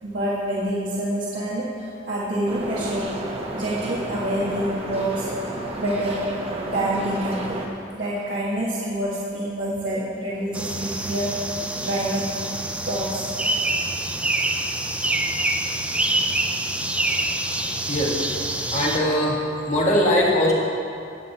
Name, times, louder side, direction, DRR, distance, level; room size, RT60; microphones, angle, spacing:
voice 1, 0.0-1.7 2.1-3.1 3.5-5.3 5.8-6.3 6.6-7.6 7.9-11.3 11.8-12.4 12.8-13.2, right 1 dB, 70° right, -9 dB, 1.7 m, -27 dB
sound 1, 2.5-7.7, right 1 dB, 35° right, 1.0 m, -32 dB
sound 2, 10.5-19.0, right 2 dB, 5° right, 0.4 m, -26 dB
voice 2, 18.7-20.5, left 1 dB, 40° left, -3 dB, 1.5 m, -21 dB
16.0 x 7.4 x 2.9 m, 2.5 s
head